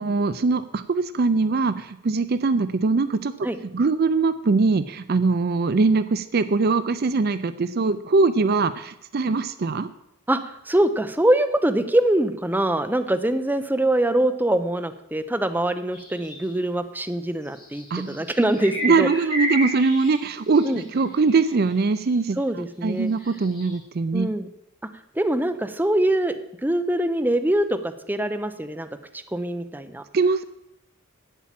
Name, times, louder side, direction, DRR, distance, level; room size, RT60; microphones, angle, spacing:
voice 1, 0.0-3.3 3.7-9.9 17.9-18.2 18.8-24.3 30.1-30.5, right 4 dB, 50° right, 13 dB, 0.5 m, -22 dB
voice 2, 10.7-19.1 20.6-20.8 22.4-23.1 24.1-24.5 25.2-28.9 29.3-30.0, right 1 dB, 10° right, 8 dB, 0.6 m, -23 dB
sound 1, 15.9-16.5 17.5-22.4 23.1-23.8, right 1 dB, 20° left, 4.3 m, -33 dB
8.6 x 8.3 x 7.5 m, 0.81 s
head